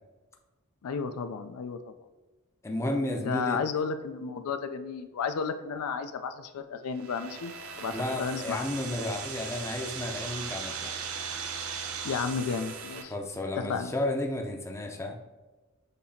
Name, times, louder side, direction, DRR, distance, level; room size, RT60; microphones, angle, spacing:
voice 1, 0.8-1.9 3.2-7.5 7.8-7.9 8.2-8.7 12.0-13.1 13.7-13.9, left 5 dB, 85° left, 9 dB, 0.4 m, -32 dB
voice 2, 2.6-3.6 7.9-10.9 13.0-15.2, left 1 dB, 15° left, 2 dB, 0.5 m, -32 dB
sound 1, 6.9-13.0, right 6 dB, 70° right, 0.6 m, -38 dB
6.7 x 2.8 x 2.7 m, 1.2 s
head